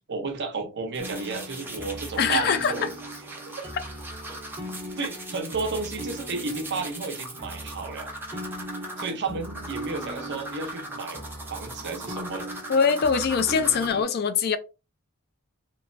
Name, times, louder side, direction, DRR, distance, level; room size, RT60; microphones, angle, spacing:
voice 1, 0.1-2.9 3.3-3.4 5.0-8.1 9.0-11.2 11.5-12.5, right 4 dB, 55° right, 0.6 m, -32 dB
sound 1, 0.9-13.9, right 1 dB, 10° right, 0.6 m, -40 dB
sound 2, 1.0-14.0, right 1 dB, 25° right, 0.9 m, -40 dB
voice 2, 2.2-2.7 9.3-9.4 12.7-14.6, left 6 dB, 45° left, 0.4 m, -23 dB
3.1 x 2.2 x 2.5 m
head